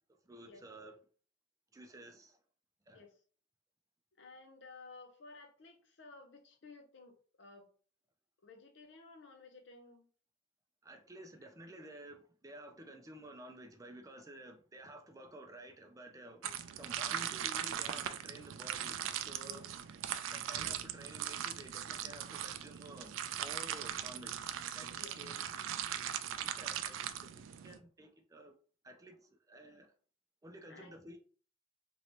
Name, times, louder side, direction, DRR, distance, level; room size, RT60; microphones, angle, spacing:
voice 1, 0.2-0.9 1.7-2.4 2.9-3.0 10.8-16.5 16.7-19.7 20.3-25.5 25.8-26.1 26.4-28.6 28.8-29.9 30.4-31.2, right 1 dB, 15° right, 0.4 m, -52 dB
voice 2, 4.2-7.7 8.4-10.1 16.4-16.6 19.4-19.6 24.9-25.1 30.7-31.0, left 3 dB, 65° left, 0.6 m, -55 dB
sound 1, 16.4-27.8, right 10 dB, 80° right, 0.3 m, -40 dB
3.0 x 2.8 x 3.0 m
head